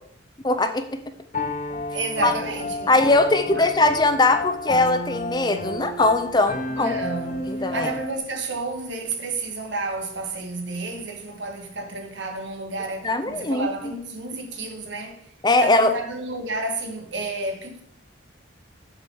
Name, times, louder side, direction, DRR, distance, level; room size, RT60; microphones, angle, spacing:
voice 1, 0.4-1.0 2.2-2.3 2.9-6.9 7.6-7.9 13.0-13.7 15.4-15.9, left 2 dB, 20° left, 0.6 m, -20 dB
Piano, 1.3-8.2, left 2 dB, 40° left, 1.0 m, -31 dB
voice 2, 1.9-3.1 3.5-3.7 6.7-15.3 15.6-17.8, right 2 dB, 80° right, 1.7 m, -31 dB
7.7 x 5.1 x 7.1 m
head